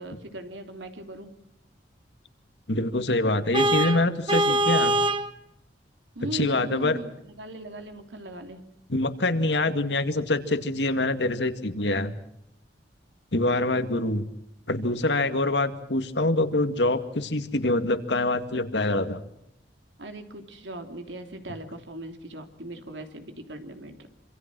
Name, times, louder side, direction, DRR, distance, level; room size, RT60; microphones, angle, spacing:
voice 1, 0.0-1.3 6.1-8.6 20.0-24.1, right 1 dB, 85° right, 6 dB, 3.1 m, -39 dB
voice 2, 2.7-5.0 6.3-7.0 8.9-12.1 13.3-14.2 14.7-19.2, left 2 dB, 75° left, 9 dB, 2.1 m, -25 dB
Vehicle horn car horn honking, 3.5-5.3, right 1 dB, 30° right, 1.3 m, -23 dB
26.0 x 26.0 x 6.2 m, 0.77 s
head